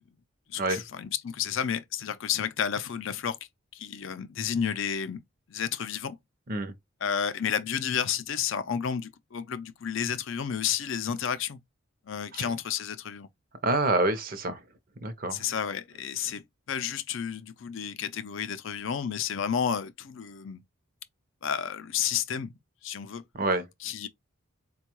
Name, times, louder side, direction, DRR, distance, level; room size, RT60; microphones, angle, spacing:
voice 1, 0.5-3.4 3.7-5.2 5.5-6.2 7.0-11.6 12.1-13.3 15.3-20.6 21.4-22.5 22.8-23.2 23.8-24.1, left 8 dB, 65° left, 0.5 m, -31 dB
voice 2, 13.6-14.6 15.0-15.4 23.3-23.7, right 2 dB, 45° right, 0.6 m, -27 dB
4.4 x 2.3 x 3.0 m
head